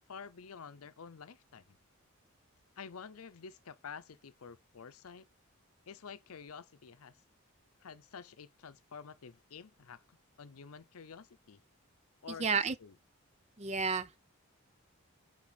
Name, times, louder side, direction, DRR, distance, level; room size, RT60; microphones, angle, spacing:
voice 1, 0.1-1.8 2.8-5.3 5.9-7.2 7.8-11.6 12.2-12.9, left 6 dB, 80° left, 0.6 m, -49 dB
voice 2, 12.4-12.8 13.6-14.2, right 5 dB, 30° right, 0.5 m, -31 dB
5.9 x 5.3 x 4.0 m
head